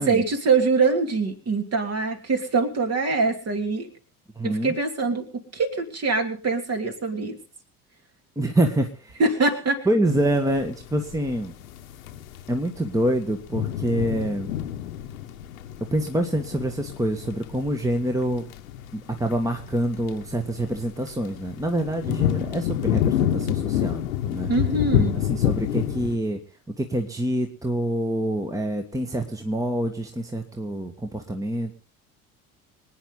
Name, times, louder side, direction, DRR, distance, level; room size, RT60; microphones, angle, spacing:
voice 1, 0.0-3.9 4.4-7.4 9.2-9.9 24.5-25.2, right 4 dB, 35° right, 5 dB, 3.0 m, -24 dB
voice 2, 4.4-4.7 8.3-9.2 9.8-11.5 12.5-14.5 15.8-18.5 18.9-24.0 24.3-24.5 25.3-26.4 26.8-31.7, right 1 dB, 5° right, 5 dB, 1.6 m, -26 dB
sound 1, 10.2-26.2, left 11 dB, 70° left, 1.3 m, -28 dB
25.0 x 9.5 x 4.0 m, 0.39 s
figure-of-eight pair, 60°, 44 cm